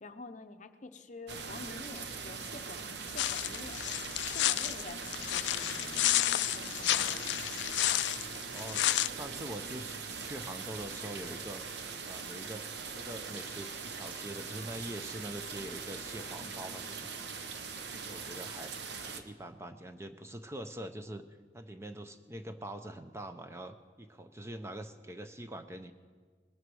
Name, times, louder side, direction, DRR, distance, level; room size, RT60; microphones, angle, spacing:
voice 1, 0.0-3.9 4.3-7.2, left 3 dB, 40° left, 8 dB, 0.7 m, -48 dB
sound 1, 1.3-19.2, right 5 dB, 60° right, 0.9 m, -41 dB
sound 2, 3.2-9.1, left 15 dB, 65° left, 0.3 m, -31 dB
voice 2, 6.9-7.6 8.5-11.6 12.1-17.3 17.9-21.3 21.5-25.9, right 1 dB, 15° right, 8 dB, 0.5 m, -44 dB
20.0 x 7.9 x 6.2 m, 1.5 s
head